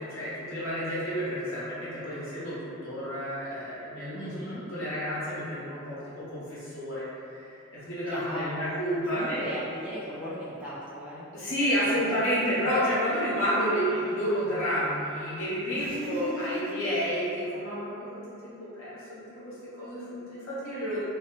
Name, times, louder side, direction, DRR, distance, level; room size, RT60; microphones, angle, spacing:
voice 1, 0.0-4.3 4.7-7.5 7.7-9.4 11.3-21.0, equal, 70° left, -10 dB, 0.9 m, -30 dB
voice 2, 4.1-4.7 8.1-8.8 9.1-11.3 15.7-16.7, equal, 5° right, -10 dB, 0.4 m, -36 dB
2.6 x 2.1 x 2.8 m, 2.6 s
head